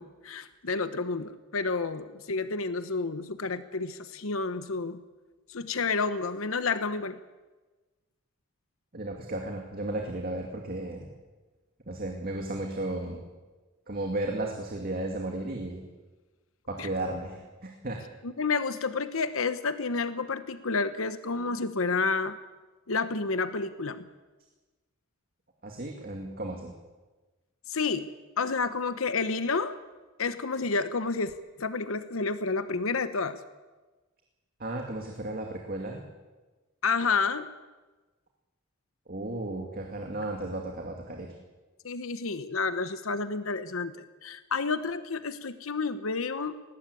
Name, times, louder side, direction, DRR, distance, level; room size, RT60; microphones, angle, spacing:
voice 1, 0.0-5.0 5.5-7.2 16.8-16.9 18.2-22.4 22.9-24.1 27.7-28.1 28.4-29.8 30.2-33.4 36.8-37.5 41.8-46.6, left 4 dB, 75° left, 11 dB, 1.0 m, -30 dB
voice 2, 8.9-11.1 11.9-13.2 13.9-15.8 16.7-18.0 25.6-26.7 34.6-36.0 39.1-41.3, right 2 dB, 45° right, 1 dB, 2.4 m, -34 dB
19.5 x 17.5 x 8.5 m, 1.2 s
head